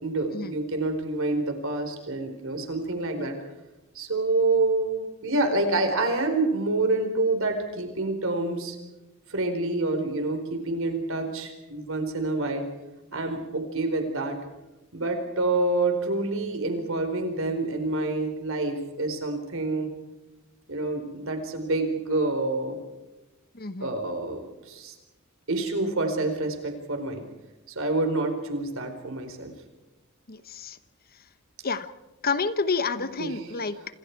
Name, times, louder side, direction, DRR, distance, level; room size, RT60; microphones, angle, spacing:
voice 1, 0.0-3.4 3.9-8.8 9.3-12.6 13.1-14.4 14.9-19.9 20.7-22.8 23.8-24.9 25.5-27.3 27.7-29.5 33.2-33.9, right 2 dB, 65° right, 6 dB, 4.4 m, -27 dB
voice 2, 23.6-23.9 30.3-30.8 31.6-31.9 32.2-33.8, left 4 dB, 45° left, 13 dB, 1.1 m, -29 dB
27.5 x 26.5 x 4.7 m, 1.0 s
head